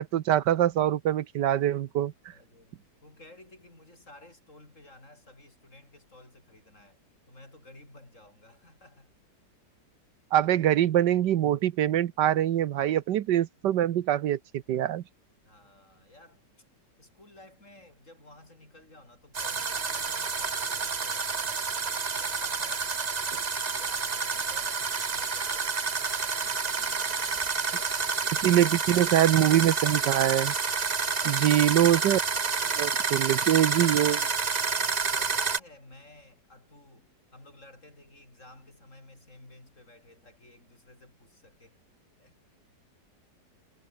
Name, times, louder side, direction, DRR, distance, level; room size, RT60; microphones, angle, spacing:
voice 1, 0.0-2.1 10.3-14.4 14.7-15.0 28.4-30.5 31.3-32.2 32.8-34.3, right 11 dB, 75° right, 1.5 m, -24 dB
voice 2, 2.3-7.0 7.3-9.1 10.4-10.5 15.5-16.6 17.0-21.7 22.2-23.0 23.7-29.8 31.2-31.5 33.4-33.6 35.1-41.8 42.2-42.4, left 2 dB, 45° left, 7.2 m, -54 dB
sound 1, 19.3-35.6, right 5 dB, 30° right, 0.9 m, -29 dB
omnidirectional pair, 1.9 m